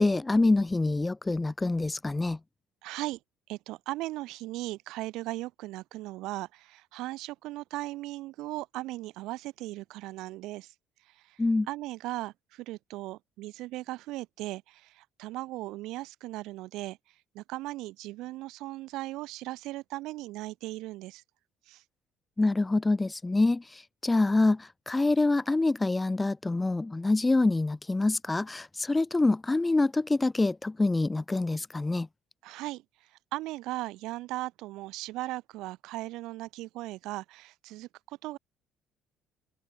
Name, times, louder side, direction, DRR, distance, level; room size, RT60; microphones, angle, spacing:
voice 1, 0.0-2.4 11.4-11.7 22.4-32.1, left 2 dB, 20° left, 0.7 m, -26 dB
voice 2, 2.8-3.2 3.5-10.7 11.3-11.4 11.7-17.0 17.3-21.2 21.7-21.8 32.4-32.8 33.3-38.4, right 18 dB, 75° right, 0.6 m, -37 dB
supercardioid pair, 65°, 0 cm